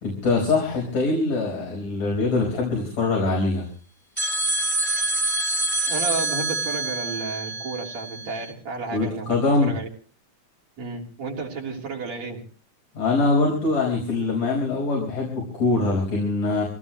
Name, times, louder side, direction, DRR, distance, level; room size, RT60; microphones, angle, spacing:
voice 1, 0.0-3.6 8.9-9.7 12.9-16.6, left 3 dB, 65° left, -2 dB, 6.1 m, -23 dB
sound 1, 4.2-8.5, right 2 dB, 5° left, 2.3 m, -26 dB
voice 2, 5.9-9.9 10.8-12.4, right 4 dB, 60° right, -1 dB, 4.5 m, -32 dB
26.0 x 18.0 x 3.1 m, 0.39 s
omnidirectional pair, 3.4 m